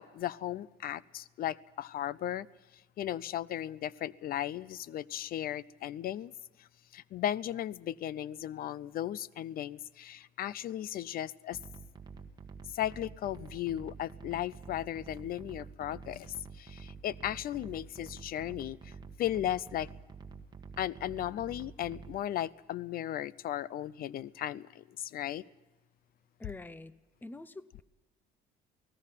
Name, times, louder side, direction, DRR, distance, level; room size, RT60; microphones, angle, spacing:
voice 1, 0.0-2.5 3.0-6.3 6.6-6.7 6.9-11.6 12.7-19.9 20.8-25.4, left 12 dB, 60° left, 0.6 m, -36 dB
sound 1, 11.5-22.2, right 5 dB, 25° right, 1.5 m, -48 dB
voice 2, 26.4-27.8, left 2 dB, 10° left, 0.8 m, -46 dB
28.5 x 18.5 x 5.7 m
cardioid pair, 110°, 17 cm